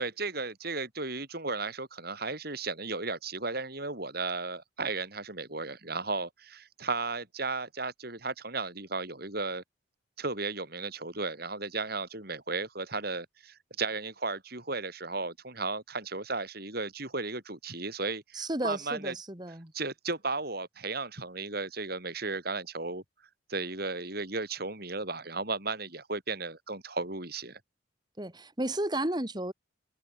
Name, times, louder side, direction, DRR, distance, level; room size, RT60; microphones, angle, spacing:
voice 1, 0.0-9.6 10.2-19.1 19.7-23.0 23.5-27.6, right 3 dB, 50° right, 4.9 m, -35 dB
voice 2, 18.3-19.7 28.2-29.5, right 1 dB, 20° right, 2.4 m, -33 dB
head